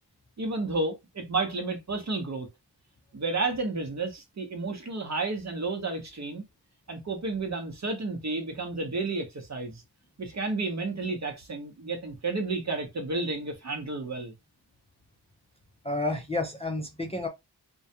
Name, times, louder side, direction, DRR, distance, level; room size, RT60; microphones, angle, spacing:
voice 1, 0.4-2.5 3.1-6.4 6.9-9.8 10.2-14.3, right 3 dB, 40° right, 0.9 m, -31 dB
voice 2, 15.8-17.3, left 2 dB, 15° left, 0.5 m, -30 dB
2.3 x 2.2 x 2.7 m
cardioid pair, 60°, 42 cm